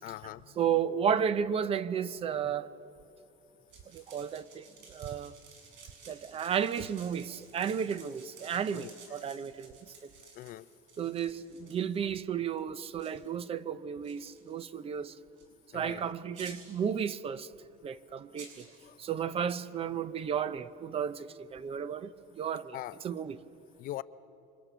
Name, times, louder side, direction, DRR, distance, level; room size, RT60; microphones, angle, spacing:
voice 1, 0.0-0.5 8.7-9.2 10.3-10.7 15.7-16.1 18.8-19.0 22.7-23.0 23.8-24.0, left 15 dB, 45° left, 0.5 m, -42 dB
voice 2, 0.6-2.7 3.9-5.3 6.1-9.9 11.0-15.2 15.7-17.5 17.8-18.7 19.0-22.8 23.0-23.4, right 8 dB, 30° right, 0.6 m, -33 dB
sound 1, 3.7-12.0 12.5-12.6 13.0-13.1 14.0-14.7 15.4-15.5 16.3-16.8 18.4-18.8, right 5 dB, 65° right, 6.2 m, -54 dB
28.0 x 24.5 x 6.1 m
cardioid pair, 155°, 20 cm